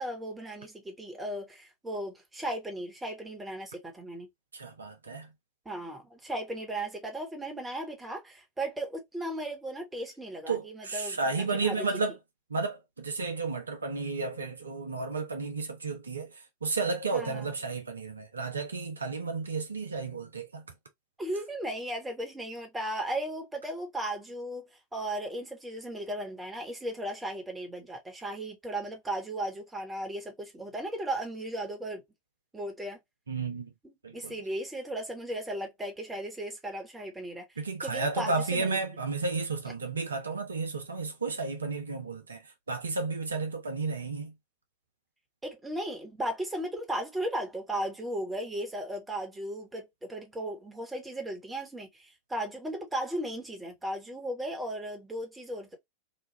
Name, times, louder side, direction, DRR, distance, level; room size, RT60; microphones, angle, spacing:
voice 1, 0.0-4.3 5.6-11.9 17.1-17.5 21.2-32.0 32.5-33.0 33.8-38.8 45.4-55.8, right 1 dB, 10° right, 1.1 m, -36 dB
voice 2, 4.5-5.3 10.5-12.2 12.5-16.3 16.6-20.6 33.3-33.7 34.0-34.3 37.6-42.4 42.7-44.3, right 4 dB, 75° right, 0.7 m, -32 dB
3.1 x 2.3 x 3.0 m
figure-of-eight pair, 90°, 0 cm